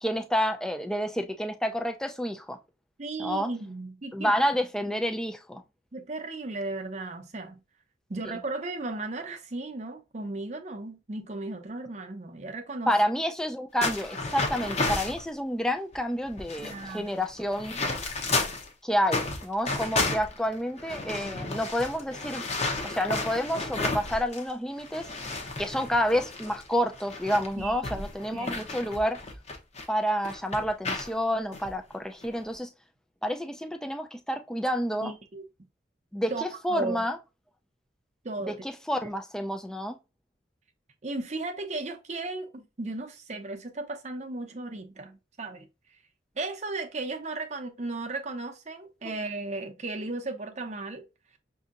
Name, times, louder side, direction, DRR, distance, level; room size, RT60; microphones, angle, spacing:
voice 1, 0.0-2.6 3.2-3.5 4.1-5.6 12.9-17.8 18.8-22.4 22.8-25.1 25.6-29.2 29.9-32.7 33.2-35.1 36.1-37.2 38.4-40.0 49.0-49.1, equal, 5° left, 0.3 m, -29 dB
voice 2, 3.0-4.3 4.9-5.0 5.9-7.6 8.1-12.9 16.6-17.3 27.6-28.9 35.0-35.4 36.3-37.0 38.2-38.6 39.0-39.1 41.0-45.7 46.4-51.0, right 2 dB, 35° right, 0.6 m, -36 dB
sound 1, 13.8-15.2 15.9-16.0 16.3-18.7 19.1-24.5 24.8-29.8 30.2-31.1 31.5-31.7 32.2-32.5, left 3 dB, 35° left, 0.8 m, -32 dB
6.0 x 2.7 x 2.5 m
head